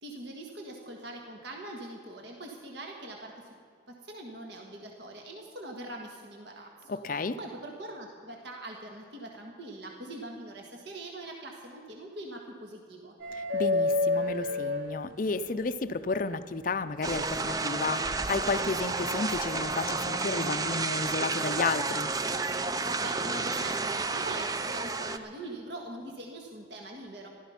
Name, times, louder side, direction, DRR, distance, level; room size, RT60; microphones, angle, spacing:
voice 1, 0.0-3.5 3.9-13.2 23.0-27.3, right 1 dB, 65° right, 1 dB, 1.6 m, -42 dB
voice 2, 6.9-7.4 13.3-22.1, left 3 dB, 45° left, 11 dB, 0.5 m, -32 dB
sound 1, 13.2-15.6 17.3-17.4 19.2-19.3, left 2 dB, 90° right, 1.9 m, -28 dB
sound 2, 17.0-25.2, right 3 dB, 20° right, 0.4 m, -31 dB
15.0 x 12.5 x 5.7 m, 2.3 s
head